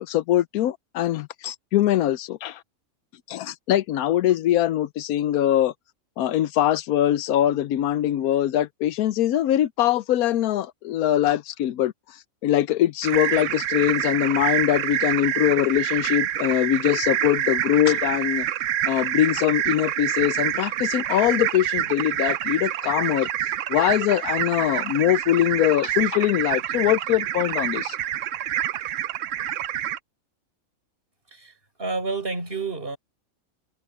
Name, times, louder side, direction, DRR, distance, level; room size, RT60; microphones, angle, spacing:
voice 1, 0.0-2.6 3.3-5.7 6.2-11.9 12.4-18.5 18.9-23.3 23.7-28.0, left 12 dB, 85° left, 1.1 m, -22 dB
sound 1, 13.0-30.0, right 11 dB, 65° right, 0.9 m, -27 dB
voice 2, 31.3-33.0, right 3 dB, 40° right, 5.9 m, -30 dB
omnidirectional pair, 1.5 m